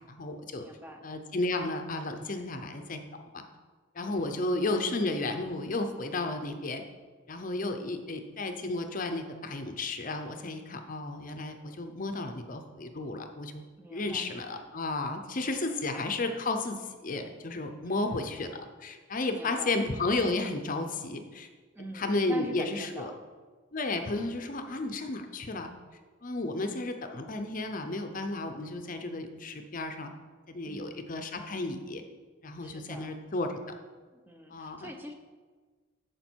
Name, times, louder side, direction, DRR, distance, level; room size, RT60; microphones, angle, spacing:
voice 1, 0.0-0.7 1.0-3.0 3.3-3.4 3.9-6.8 7.3-13.6 13.9-21.5 21.9-23.1 23.7-25.7 26.2-30.1 30.5-32.0 32.4-33.8 34.5-34.9, left 2 dB, 40° left, 6 dB, 0.6 m, -33 dB
voice 2, 0.6-1.1 4.0-4.4 13.8-14.6 15.7-16.0 17.8-18.3 19.3-19.8 21.7-23.2 30.7-31.0 32.6-33.2 34.1-35.1, right 1 dB, 10° right, 4 dB, 0.7 m, -45 dB
9.5 x 6.7 x 4.5 m, 1.4 s
head